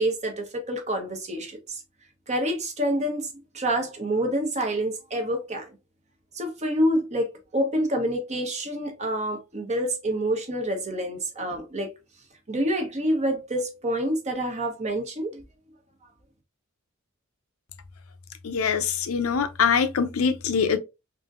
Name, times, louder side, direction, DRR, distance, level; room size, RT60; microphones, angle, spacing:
voice 1, 0.0-1.8 2.3-3.3 3.5-5.7 6.3-11.9 12.5-15.4, right 1 dB, 35° right, 0.9 m, -27 dB
voice 2, 18.4-20.8, left 6 dB, 80° left, 0.6 m, -23 dB
3.5 x 2.6 x 2.4 m
head